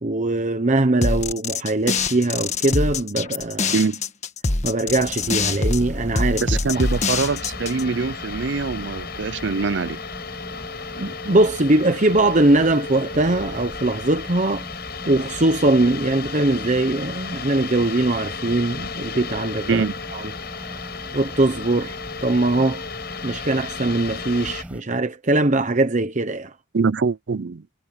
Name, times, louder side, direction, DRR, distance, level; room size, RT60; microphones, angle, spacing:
voice 1, 0.0-3.7 4.6-6.4 11.0-14.7 15.1-19.8 20.1-20.3 21.1-22.8 23.2-26.5, right 2 dB, 40° right, 1.0 m, -21 dB
sound 1, 1.0-7.8, left 3 dB, 35° left, 1.5 m, -24 dB
sound 2, 4.9-24.8, equal, 5° right, 5.1 m, -40 dB
voice 2, 6.4-10.0 19.7-19.9 26.7-27.6, right 4 dB, 65° right, 0.5 m, -23 dB
sound 3, 6.7-24.6, left 5 dB, 55° left, 7.4 m, -34 dB
head